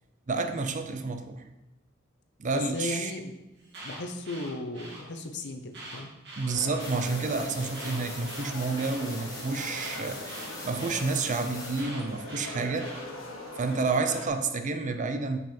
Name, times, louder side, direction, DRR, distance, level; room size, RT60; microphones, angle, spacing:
voice 1, 0.3-1.4 2.4-3.1 6.4-12.9 13.6-15.4, right 3 dB, 40° right, 7 dB, 0.5 m, -30 dB
voice 2, 2.5-3.3 3.8-6.1, left 2 dB, 60° left, 6 dB, 0.7 m, -36 dB
Alarm, 3.5-5.0 5.7-7.0 7.7-9.0 9.7-11.0 11.7-13.0, right 2 dB, 60° right, 2.0 m, -44 dB
sound 1, 6.5-14.3, left 1 dB, 75° left, 1.3 m, -41 dB
sound 2, 6.8-11.8, left 2 dB, 20° left, 1.7 m, -42 dB
6.1 x 5.4 x 4.4 m, 0.96 s
head